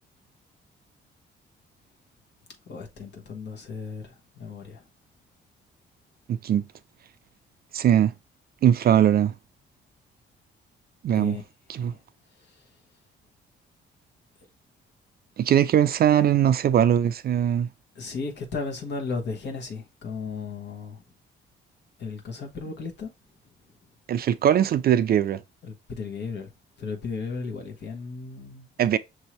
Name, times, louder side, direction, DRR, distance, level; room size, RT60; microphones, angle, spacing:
voice 1, 2.7-4.8 11.1-11.4 11.7-12.0 12.4-12.6 17.9-21.0 22.0-23.1 25.6-26.5 26.8-28.7, left 4 dB, 60° left, 1.1 m, -35 dB
voice 2, 6.3-6.6 7.7-8.1 8.6-9.3 11.0-11.4 11.7-11.9 15.4-17.7 24.1-25.4 28.8-29.0, right 10 dB, 50° right, 0.4 m, -20 dB
6.1 x 2.7 x 3.0 m
cardioid pair, 90°, 20 cm